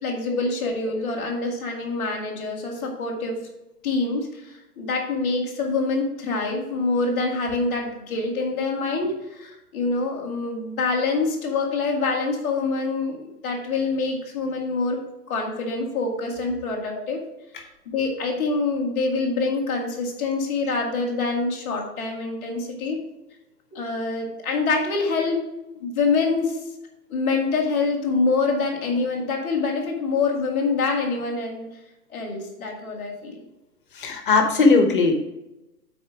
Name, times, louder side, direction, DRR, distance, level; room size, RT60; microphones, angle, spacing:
voice 1, 0.0-3.4 3.8-15.0 15.3-17.2 17.9-23.0 23.7-25.4 25.7-26.6 27.1-31.7 32.1-33.4, left 3 dB, 10° left, -10 dB, 0.8 m, -25 dB
voice 2, 34.0-35.2, left 3 dB, 35° left, 4 dB, 1.1 m, -18 dB
9.7 x 4.3 x 4.7 m, 0.96 s
hypercardioid pair, 170°, 46 cm